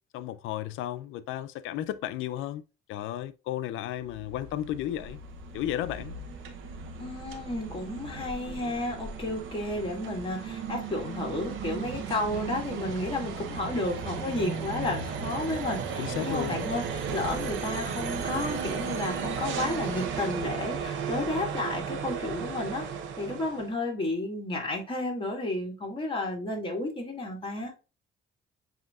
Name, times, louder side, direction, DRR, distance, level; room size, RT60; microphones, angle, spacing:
voice 1, 0.1-2.6 2.9-5.2 5.5-6.2 16.0-16.7, left 12 dB, 85° left, 0.4 m, -33 dB
sound 1, 3.9-23.7, right 6 dB, 80° right, 0.8 m, -35 dB
voice 2, 7.0-22.9 23.2-27.7, left 2 dB, 25° left, 1.8 m, -32 dB
7.5 x 2.8 x 2.3 m
cardioid pair, 90°, 20 cm